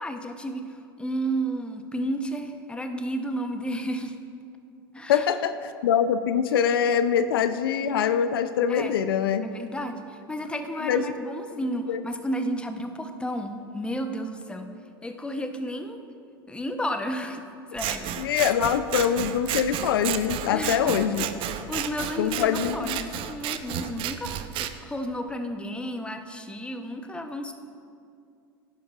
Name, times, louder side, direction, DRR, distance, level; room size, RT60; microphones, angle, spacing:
voice 1, 0.0-4.2 4.9-5.3 8.7-8.9 9.4-14.7 15.0-16.0 16.5-18.4 20.5-21.0 21.4-27.5, equal, 10° left, 6 dB, 0.8 m, -32 dB
voice 2, 5.1-9.5 10.8-11.0 11.9-12.0 18.2-21.3 22.2-23.0, left 8 dB, 75° left, 11 dB, 0.5 m, -24 dB
Scissors, 17.8-24.7, right 11 dB, 45° right, 0.6 m, -32 dB
16.0 x 11.0 x 2.4 m, 2.5 s
hypercardioid pair, 90°, 12 cm